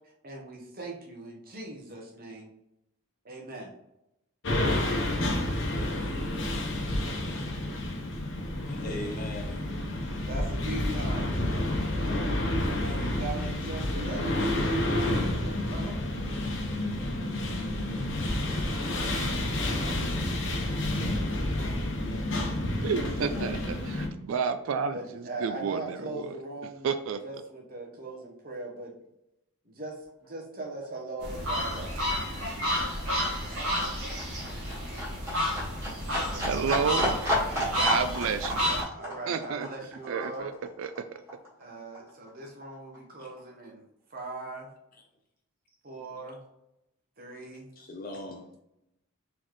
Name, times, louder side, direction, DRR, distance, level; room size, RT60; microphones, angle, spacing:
voice 1, 0.2-2.5 3.2-3.7 9.0-9.5 10.3-11.4 12.5-16.1 20.3-20.6 22.9-23.6 24.9-26.9 27.2-28.9 29.6-32.1 36.1-36.4 38.9-40.5 41.6-43.8 44.1-44.7 45.8-46.4 47.2-47.7, right 2 dB, 45° right, 1.0 m, -40 dB
sound 1, 4.4-24.1, left 1 dB, 55° left, 0.9 m, -29 dB
voice 2, 8.7-9.6 43.2-43.3 47.8-48.6, left 1 dB, 40° left, 0.5 m, -39 dB
voice 3, 22.8-26.3 26.8-27.2 36.4-37.2 37.5-39.7 40.1-40.5 40.8-40.9, right 6 dB, 70° right, 0.3 m, -31 dB
Livestock farm animals working animals, 30.2-30.4 30.6-41.6 41.9-43.0 43.3-43.4, equal, 10° right, 1.6 m, -33 dB
sound 2, 31.2-38.8, equal, 85° right, 1.5 m, -31 dB
4.1 x 3.9 x 3.1 m
head